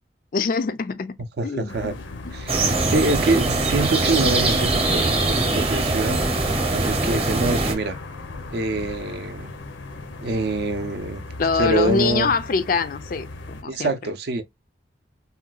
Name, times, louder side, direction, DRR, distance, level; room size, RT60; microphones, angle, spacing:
voice 1, 0.3-1.2 1.4-1.9 11.4-13.9, left 4 dB, 45° left, 0.4 m, -24 dB
voice 2, 1.4-2.0 2.3-2.6 2.9-6.2 6.7-8.0 8.5-9.5 10.2-11.2 11.5-12.3 13.7-14.4, right 2 dB, 55° right, 0.4 m, -25 dB
sound 1, 1.7-13.6, left 3 dB, 85° left, 0.7 m, -37 dB
sound 2, 2.5-7.7, right 2 dB, 30° right, 0.8 m, -22 dB
3.7 x 2.2 x 2.2 m
head